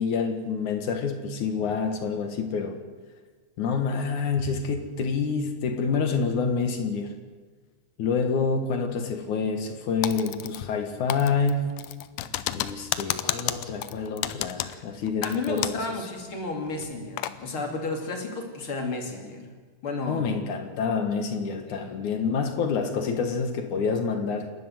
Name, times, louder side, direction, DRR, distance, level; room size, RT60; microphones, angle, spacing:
voice 1, 0.0-2.8 3.6-7.1 8.0-11.7 12.5-15.7 20.1-24.5, left 5 dB, 60° left, 7 dB, 2.7 m, -27 dB
Typing, 10.0-10.8 11.1-15.9 16.2-16.3 16.8-17.4, left 13 dB, 75° left, 2.0 m, -31 dB
voice 2, 15.2-19.5 19.8-20.2 21.7-22.0, left 3 dB, 35° left, 3 dB, 3.0 m, -32 dB
28.5 x 12.0 x 7.8 m, 1.4 s
omnidirectional pair, 4.4 m